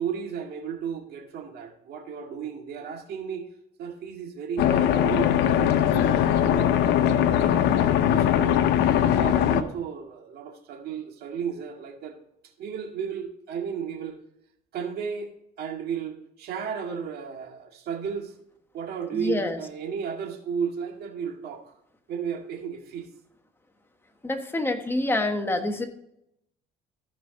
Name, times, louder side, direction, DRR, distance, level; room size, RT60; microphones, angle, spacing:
voice 1, 0.0-3.5 3.8-7.6 8.1-8.6 9.2-12.2 12.6-14.2 14.7-15.3 15.6-18.3 18.7-21.7 22.1-23.1, right 7 dB, 70° right, 2 dB, 2.0 m, -34 dB
sound 1, 4.6-9.6, left 10 dB, 85° left, 0.7 m, -21 dB
voice 2, 19.1-19.6 24.2-25.8, left 2 dB, 15° left, 5 dB, 1.3 m, -26 dB
14.5 x 5.5 x 3.9 m, 0.78 s
cardioid pair, 110°, 17 cm